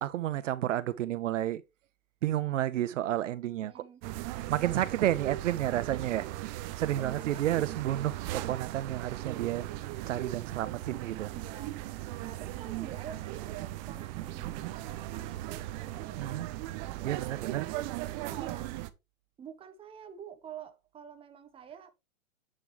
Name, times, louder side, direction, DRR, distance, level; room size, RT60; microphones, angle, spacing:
voice 1, 0.0-1.6 2.2-3.8 4.5-6.3 6.8-9.7 10.1-11.3 16.2-16.5 17.0-17.7, right 13 dB, 60° right, 1.0 m, -31 dB
voice 2, 3.6-4.0 6.8-7.8 11.3-11.7 12.2-13.6 13.9-16.4 17.1-17.9 18.2-18.8 19.4-21.9, right 8 dB, 15° right, 1.1 m, -48 dB
sound 1, 4.0-18.9, right 15 dB, 30° right, 0.8 m, -38 dB
8.6 x 7.1 x 3.2 m
hypercardioid pair, 125°, 43 cm